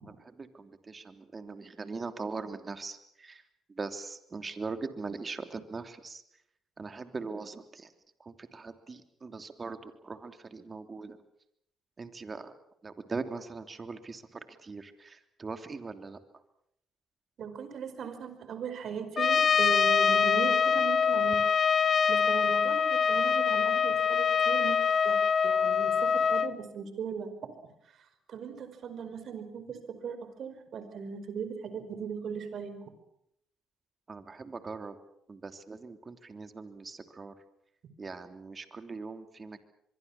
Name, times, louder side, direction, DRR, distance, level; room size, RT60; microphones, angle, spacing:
voice 1, 0.0-3.4 3.7-6.2 6.8-7.9 8.2-11.2 12.0-12.5 12.8-16.2 34.1-35.0 35.3-37.3 38.0-39.6, right 4 dB, 35° right, 9 dB, 3.1 m, -41 dB
voice 2, 17.4-21.4 22.1-25.2 25.4-27.3 28.3-32.8, right 6 dB, 60° right, 10 dB, 4.9 m, -38 dB
Trumpet, 19.2-26.5, left 6 dB, 50° left, 1.1 m, -25 dB
24.0 x 23.5 x 7.3 m, 0.76 s
supercardioid pair, 60°, 0 cm